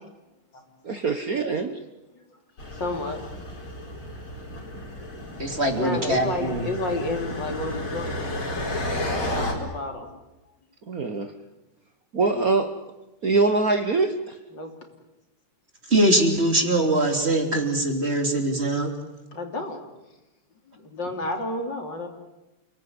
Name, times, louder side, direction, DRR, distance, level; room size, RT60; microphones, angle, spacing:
voice 1, 0.8-1.8 10.9-11.3 12.1-12.7 13.2-14.4, right 3 dB, 45° right, 7 dB, 1.5 m, -23 dB
sound 1, 2.6-9.5, left 1 dB, 75° left, 5.5 m, -32 dB
voice 2, 2.7-3.2 5.2-8.4 9.0-10.2 14.5-14.7 19.3-19.8 20.7-22.1, left 2 dB, 55° left, 4 dB, 3.8 m, -31 dB
voice 3, 5.4-6.7 15.9-18.9, right 1 dB, 30° right, 3 dB, 3.5 m, -22 dB
29.5 x 19.5 x 9.7 m, 1.0 s
omnidirectional pair, 2.4 m